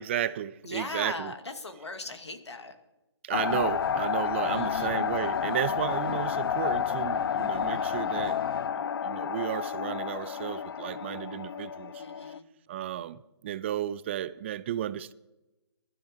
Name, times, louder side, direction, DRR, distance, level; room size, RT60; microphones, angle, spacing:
voice 1, 0.0-1.3 3.2-8.4 8.8-12.0 12.7-15.1, right 11 dB, 25° right, 0.4 m, -33 dB
voice 2, 0.6-2.8 4.4-4.9 12.0-12.5, left 3 dB, 75° left, 2.2 m, -39 dB
sound 1, 3.3-12.4, left 8 dB, 55° left, 0.6 m, -30 dB
22.5 x 12.5 x 3.6 m
figure-of-eight pair, 140°, 14 cm